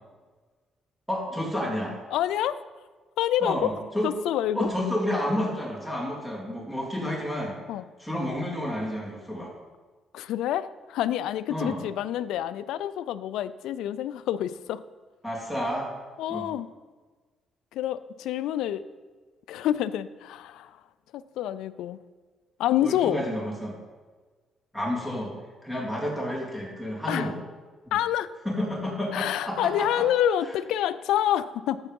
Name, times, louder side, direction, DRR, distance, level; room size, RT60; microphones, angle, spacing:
voice 1, 1.1-2.0 3.4-4.1 4.5-7.6 8.0-9.5 11.5-11.8 15.2-15.9 16.3-16.5 22.8-23.7 24.7-25.3 25.6-27.3 27.8-28.0 28.4-30.1, left 1 dB, 5° left, -3 dB, 3.3 m, -30 dB
voice 2, 2.1-2.6 3.2-3.7 4.0-4.7 7.7-7.8 10.1-14.8 16.2-16.7 17.7-18.8 19.5-20.8 21.1-22.0 22.6-23.2 27.1-27.3 27.9-28.3 29.1-31.8, left 11 dB, 90° left, 15 dB, 0.4 m, -27 dB
13.5 x 4.6 x 5.4 m, 1.4 s
cardioid pair, 90°, 0 cm